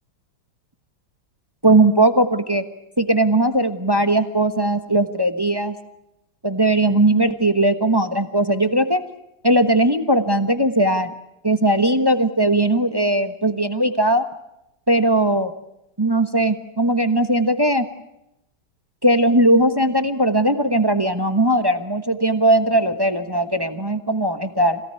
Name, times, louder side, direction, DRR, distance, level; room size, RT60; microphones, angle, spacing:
voice 1, 1.6-2.6 3.0-5.7 6.4-9.0 9.4-11.1 11.4-14.2 14.9-15.5 16.0-17.8 19.0-24.8, right 1 dB, 15° right, 9 dB, 0.9 m, -18 dB
26.5 x 17.5 x 9.7 m, 0.86 s
omnidirectional pair, 2.2 m